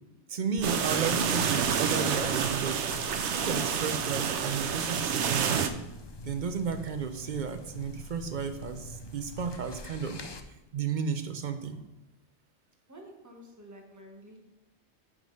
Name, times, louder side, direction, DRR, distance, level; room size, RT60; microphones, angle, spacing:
voice 1, 0.3-5.6 6.2-10.3 10.7-11.8, right 6 dB, 50° right, 9 dB, 0.6 m, -33 dB
sound 1, 0.6-10.4, left 1 dB, 45° left, 0.3 m, -44 dB
sound 2, 0.6-5.7, right 7 dB, 90° right, 0.9 m, -28 dB
voice 2, 12.9-14.4, equal, 15° right, 0 dB, 1.3 m, -50 dB
9.2 x 3.9 x 5.2 m, 0.97 s
omnidirectional pair, 1.2 m